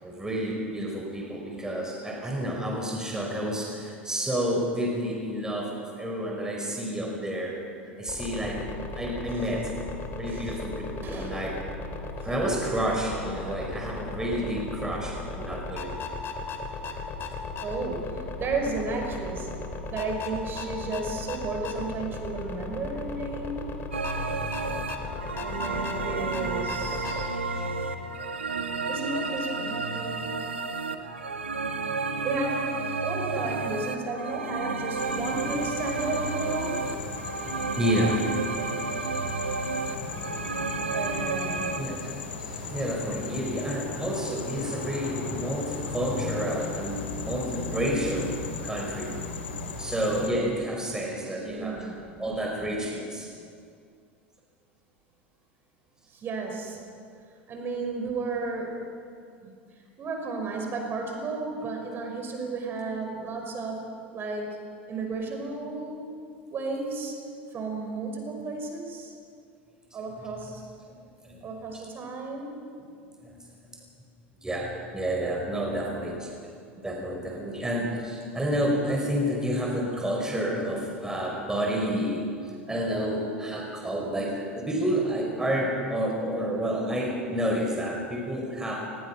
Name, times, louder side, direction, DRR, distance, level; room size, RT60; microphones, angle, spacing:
voice 1, 0.0-7.6 8.0-8.6 8.9-9.7 10.2-10.8 11.1-11.5 12.2-16.0 27.0-27.7 37.7-38.3 41.8-42.2 42.5-48.4 48.6-49.2 49.8-51.9 52.2-53.3 70.9-71.0 71.2-71.5 73.2-73.4 74.4-76.3 76.8-82.2 82.7-88.8, equal, 10° right, 0 dB, 4.9 m, -30 dB
sound 1, 8.1-27.3, left 3 dB, 40° left, 3.1 m, -36 dB
voice 2, 10.3-10.6 11.0-11.4 12.2-12.3 16.9-17.1 17.6-23.7 25.4-27.3 28.9-30.2 32.2-36.8 40.9-41.8 51.5-51.9 56.1-56.8 57.5-58.7 59.4-59.5 60.0-63.8 64.1-64.6 64.9-66.0 66.5-67.2 67.5-69.1 69.9-70.6 71.4-72.9, right 3 dB, 35° right, 2 dB, 5.8 m, -33 dB
sound 2, 23.9-41.8, right 4 dB, 90° right, 1.6 m, -31 dB
sound 3, 35.0-50.3, left 5 dB, 75° left, 3.3 m, -36 dB
28.0 x 21.0 x 5.9 m, 2.3 s
figure-of-eight pair, 80°, 6 cm